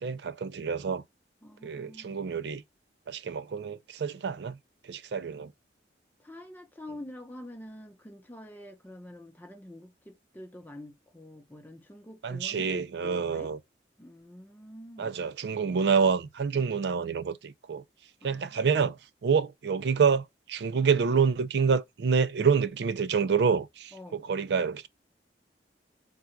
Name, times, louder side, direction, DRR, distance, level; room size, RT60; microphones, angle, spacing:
voice 1, 0.0-1.0 1.6-2.6 3.1-4.6 4.9-5.5 12.2-13.6 15.0-17.8 18.2-19.0 19.2-24.9, right 6 dB, 70° right, 0.4 m, -27 dB
voice 2, 1.4-2.2 6.2-13.5 14.0-15.1 18.2-18.6 23.9-24.2, left 1 dB, 10° left, 0.8 m, -46 dB
3.8 x 2.3 x 4.4 m
head